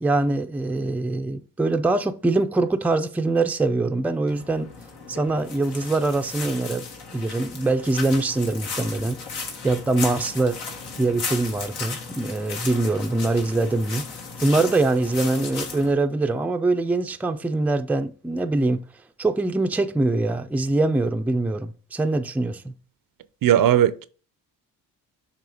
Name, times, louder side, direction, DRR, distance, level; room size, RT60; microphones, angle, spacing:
voice 1, 0.0-4.7 5.1-6.8 7.1-9.2 9.6-10.6 11.0-14.1 14.4-18.8 19.2-22.7, right 2 dB, 5° right, 0.4 m, -23 dB
sound 1, 4.3-15.9, left 4 dB, 80° left, 1.6 m, -35 dB
voice 2, 23.4-24.1, right 11 dB, 60° right, 0.6 m, -17 dB
6.7 x 3.4 x 5.0 m
cardioid pair, 70°, 39 cm